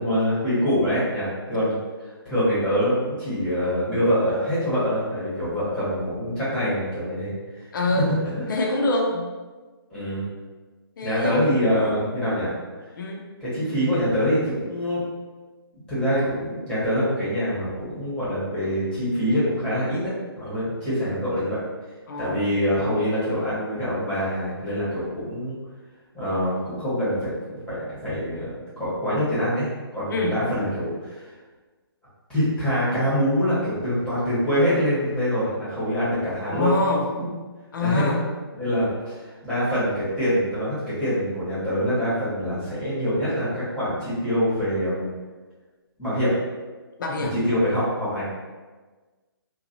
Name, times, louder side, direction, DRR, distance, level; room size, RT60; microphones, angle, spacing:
voice 1, 0.0-1.8 2.2-7.7 8.4-8.5 9.9-10.2 11.0-12.5 13.4-15.0 15.9-21.6 22.2-25.5 26.1-31.3 32.3-36.7 37.2-37.3 37.8-38.1 38.5-45.1 46.0-46.3 47.3-48.3, equal, 5° left, -12 dB, 1.0 m, -25 dB
voice 2, 7.7-8.1 8.5-9.3 11.0-12.0 13.0-13.3 22.1-22.4 30.1-30.4 36.5-37.0 37.7-38.2 47.0-47.3, left 2 dB, 55° left, 0 dB, 0.6 m, -25 dB
3.1 x 2.2 x 2.6 m, 1.3 s
hypercardioid pair, 155°, 13 cm